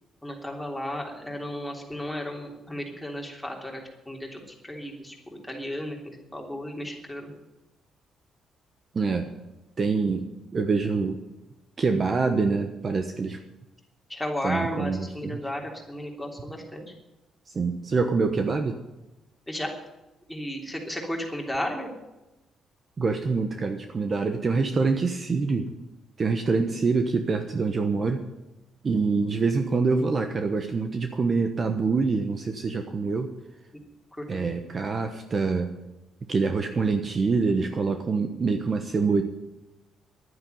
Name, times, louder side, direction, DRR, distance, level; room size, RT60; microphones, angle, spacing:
voice 1, 0.2-7.3 14.1-16.9 19.5-19.7 20.3-21.9 34.1-34.4, equal, 5° left, 0 dB, 3.2 m, -34 dB
voice 2, 8.9-9.3 9.8-10.3 10.5-11.2 11.8-13.4 14.4-15.4 17.5-18.8 23.0-25.7 26.2-28.2 28.8-33.3 34.3-35.7 36.3-39.2, right 4 dB, 35° right, 6 dB, 1.1 m, -25 dB
11.5 x 9.6 x 9.4 m, 0.99 s
cardioid pair, 125°, 0 cm